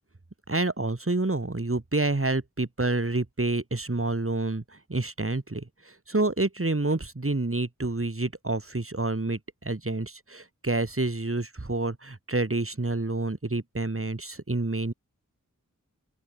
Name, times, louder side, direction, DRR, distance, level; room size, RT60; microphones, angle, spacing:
voice 1, 0.5-4.6 4.9-5.6 6.1-14.9, right 2 dB, 40° right, 4.9 m, -28 dB
open air
wide cardioid pair, 65°, 33 cm